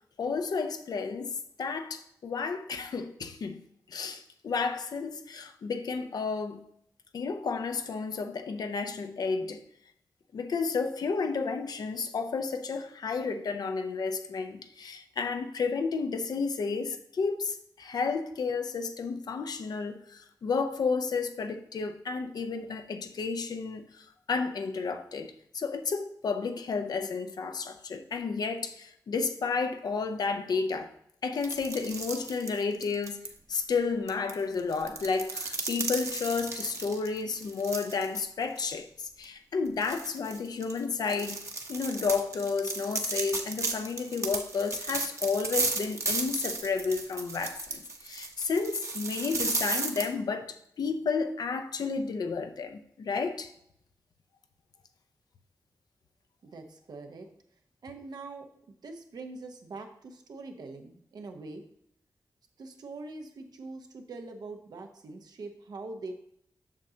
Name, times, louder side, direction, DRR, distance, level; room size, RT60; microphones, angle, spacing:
voice 1, 0.2-1.3 1.6-3.6 3.9-6.6 7.1-9.6 10.3-30.9 31.2-33.2 33.5-41.4 41.7-53.5, left 4 dB, 80° left, 0.6 m, -32 dB
sound 1, 31.4-33.3 34.1-38.2 38.6-38.7 39.2-39.3 39.8-50.0, right 3 dB, 50° right, 0.9 m, -34 dB
voice 2, 56.4-57.3 57.8-61.6 62.6-66.1, right 3 dB, 85° right, 0.9 m, -43 dB
7.3 x 6.3 x 2.8 m
wide cardioid pair, 80°, 7 cm